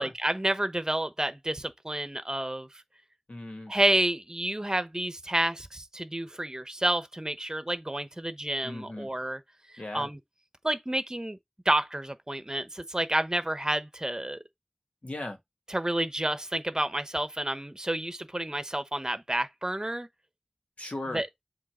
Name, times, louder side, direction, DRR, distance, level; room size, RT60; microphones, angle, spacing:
voice 1, 0.0-2.7 3.7-9.4 9.7-10.2 10.6-11.4 11.6-14.4 15.7-20.1 21.1-21.3, right 1 dB, 30° right, 1.0 m, -29 dB
voice 2, 3.3-3.7 8.6-9.1 9.8-10.1 15.0-15.4 20.8-21.2, left 1 dB, 90° left, 1.5 m, -37 dB
7.6 x 3.0 x 4.3 m
wide cardioid pair, 45°, 2 cm